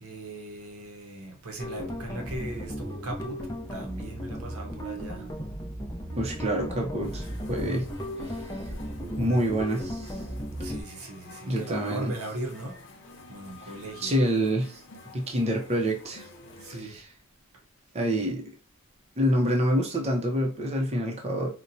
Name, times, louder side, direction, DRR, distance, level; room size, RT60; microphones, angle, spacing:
voice 1, 0.0-3.4 3.7-5.3 10.6-12.8 13.3-14.1 16.6-17.0, right 1 dB, 80° right, 0.8 m, -38 dB
sound 1, 1.6-10.8, equal, 15° left, 0.6 m, -35 dB
voice 2, 6.2-7.9 9.2-10.2 11.5-12.1 14.0-14.8 15.1-16.3 16.8-17.0 17.9-18.5 19.2-21.5, equal, 30° right, 0.6 m, -27 dB
sound 2, 7.0-16.8, left 2 dB, 60° left, 0.8 m, -50 dB
4.0 x 2.1 x 2.6 m
head